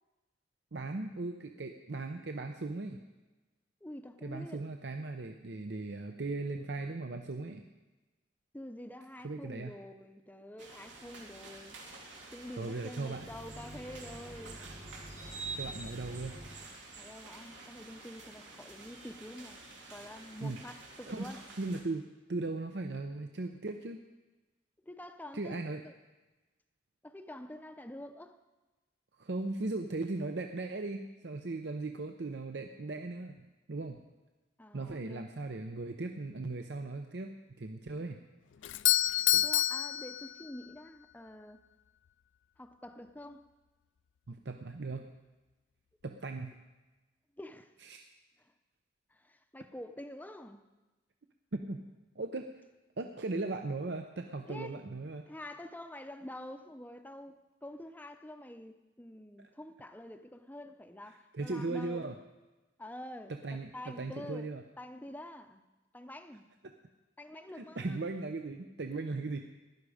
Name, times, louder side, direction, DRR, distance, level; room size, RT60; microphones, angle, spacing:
voice 1, 0.7-3.0 4.2-7.6 9.2-9.7 12.6-13.3 14.6-14.7 15.5-16.4 20.4-20.6 21.1-21.3 21.6-22.0 22.3-24.0 25.3-25.8 29.2-34.0 34.7-38.2 44.3-45.1 46.0-46.6 47.9-48.1 51.5-51.8 52.2-52.5 53.0-55.2 59.4-59.5 61.3-62.1 63.4-64.6 67.5-69.4, right 3 dB, 65° right, 0.7 m, -38 dB
voice 2, 3.8-4.7 8.5-11.8 12.3-14.6 17.0-19.6 19.9-21.4 24.9-25.9 27.0-28.4 34.6-35.3 39.4-41.6 42.6-43.5 47.4-47.7 48.4-48.5 49.1-50.6 54.5-54.8 55.3-62.0 62.8-65.6 65.9-66.5 67.2-68.0, left 1 dB, 10° left, 0.6 m, -47 dB
sound 1, 10.6-21.8, right 3 dB, 85° right, 3.0 m, -48 dB
sound 2, 13.0-16.7, equal, 35° right, 1.2 m, -49 dB
Doorbell, 38.6-40.8, left 13 dB, 85° left, 0.4 m, -28 dB
16.5 x 12.0 x 5.0 m
head